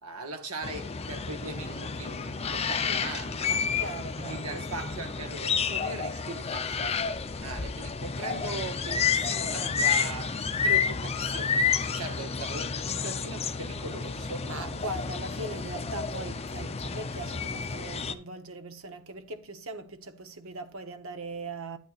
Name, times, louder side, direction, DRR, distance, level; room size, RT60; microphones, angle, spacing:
voice 1, 0.0-3.8 4.2-6.9 7.4-14.5, right 3 dB, 80° right, 1.5 m, -40 dB
sound 1, 0.6-18.1, left 5 dB, 30° left, 0.6 m, -30 dB
voice 2, 3.8-4.5 9.5-9.8 14.4-21.8, right 2 dB, 65° right, 1.1 m, -40 dB
11.5 x 9.2 x 2.5 m
head